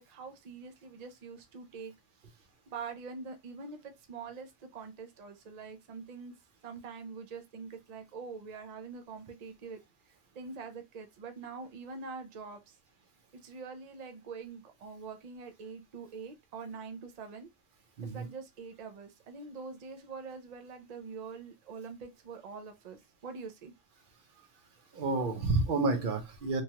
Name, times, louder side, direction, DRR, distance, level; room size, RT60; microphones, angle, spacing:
voice 1, 0.0-1.9 2.7-6.3 6.6-9.8 10.3-12.8 13.4-17.5 18.0-23.7, right 5 dB, 75° right, 0.3 m, -44 dB
voice 2, 18.0-18.3 24.9-26.6, right 3 dB, 50° right, 0.7 m, -30 dB
3.1 x 2.3 x 2.8 m
omnidirectional pair, 1.3 m